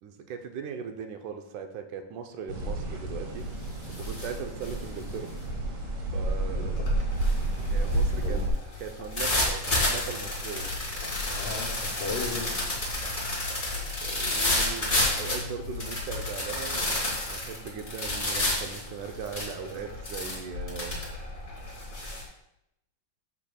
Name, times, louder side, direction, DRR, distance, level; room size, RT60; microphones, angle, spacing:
voice 1, 0.0-3.5 3.9-5.3 6.1-6.8 7.7-8.4 8.8-10.7 14.0-21.0, right 6 dB, 75° right, 5 dB, 2.1 m, -39 dB
sound 1, 2.5-8.5, right 1 dB, 60° right, 2.5 m, -30 dB
sound 2, 2.6-2.9 3.3-22.2, left 1 dB, 20° left, 1.9 m, -31 dB
voice 2, 6.5-6.9 8.2-8.4 10.6-10.7 11.4-12.7, left 4 dB, 85° left, -3 dB, 2.8 m, -36 dB
sound 3, 9.4-16.4, left 4 dB, 60° left, 2.3 m, -41 dB
12.0 x 7.1 x 2.3 m, 0.82 s
omnidirectional pair, 3.8 m